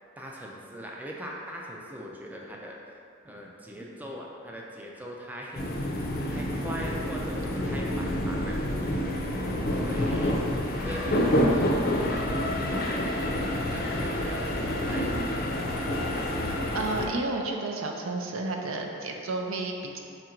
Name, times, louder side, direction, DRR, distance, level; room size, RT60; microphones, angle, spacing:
voice 1, 0.2-3.0 3.2-5.6 6.3-8.6 9.7-10.4 10.8-15.3 15.8-16.0, equal, 10° right, -2 dB, 0.3 m, -41 dB
sound 1, 5.5-17.1, left 1 dB, 50° left, 0.5 m, -28 dB
voice 2, 16.7-20.0, right 2 dB, 80° right, 2 dB, 0.5 m, -31 dB
4.5 x 2.5 x 4.3 m, 2.5 s
head